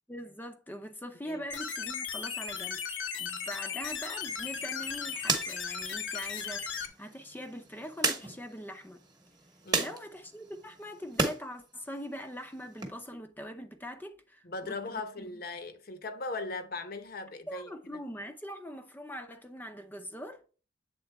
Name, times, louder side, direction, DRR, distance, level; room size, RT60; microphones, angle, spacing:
voice 1, 0.1-9.0 9.8-15.3 17.5-20.4, equal, 10° left, 0.5 m, -42 dB
sound 1, 1.5-6.9, left 6 dB, 75° left, 1.0 m, -36 dB
sound 2, 4.2-11.4 11.8-12.9, right 4 dB, 20° right, 1.1 m, -36 dB
voice 2, 14.4-17.7, left 3 dB, 50° left, 0.8 m, -38 dB
7.9 x 3.8 x 3.4 m
head